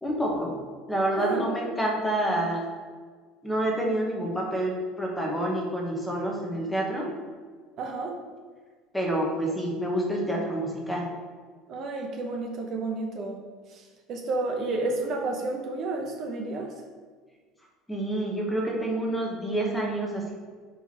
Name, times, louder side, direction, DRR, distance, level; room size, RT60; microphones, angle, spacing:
voice 1, 0.0-0.5 0.9-2.6 3.4-7.1 8.9-11.1 17.9-20.3, right 1 dB, 5° left, -1 dB, 1.0 m, -28 dB
voice 2, 1.1-1.5 7.8-8.2 11.7-13.4 13.7-13.8 14.1-16.7, right 3 dB, 35° right, 2 dB, 0.7 m, -30 dB
5.7 x 4.6 x 4.2 m, 1.5 s
cardioid pair, 160°, 0 cm